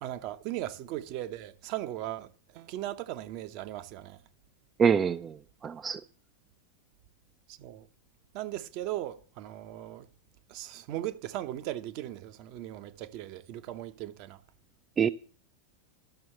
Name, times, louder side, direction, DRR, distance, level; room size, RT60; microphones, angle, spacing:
voice 1, 0.0-4.2 7.5-7.9 8.3-10.1 10.5-14.4, right 14 dB, 50° right, 0.8 m, -38 dB
voice 2, 4.8-5.3 5.6-6.0 15.0-15.1, right 7 dB, 25° right, 0.4 m, -24 dB
12.5 x 6.2 x 7.7 m
figure-of-eight pair, 90°, 0 cm